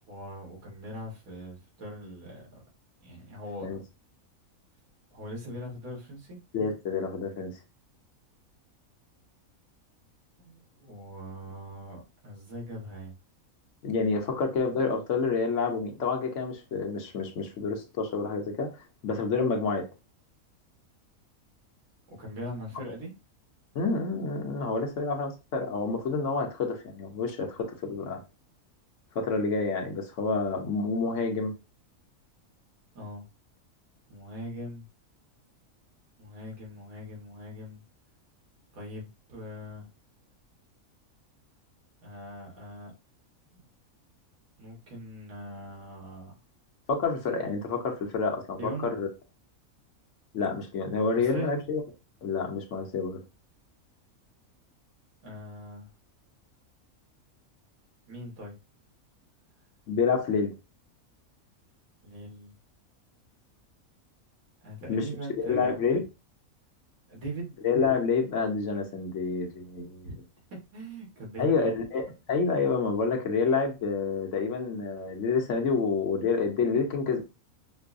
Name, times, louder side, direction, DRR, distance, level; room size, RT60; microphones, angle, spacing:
voice 1, 0.1-2.4 3.0-3.8 5.1-6.4 10.4-13.2 14.2-14.4 22.1-23.1 32.9-33.3 34.1-34.9 36.2-37.8 38.7-39.9 42.0-42.9 43.5-43.6 44.6-46.4 48.6-48.9 51.1-51.5 55.2-55.9 58.1-58.5 62.0-62.6 64.6-65.9 67.1-67.6 70.0-70.2 70.5-71.7, equal, 80° right, 1.9 m, -41 dB
voice 2, 6.5-7.5 13.8-18.7 19.0-19.9 23.7-28.2 29.1-31.5 46.9-49.1 50.3-51.8 52.2-53.2 59.9-60.5 64.9-65.1 65.4-66.0 67.6-70.1 71.4-72.0 72.3-77.2, left 4 dB, 65° left, 1.0 m, -28 dB
5.3 x 2.1 x 2.5 m
omnidirectional pair, 1.5 m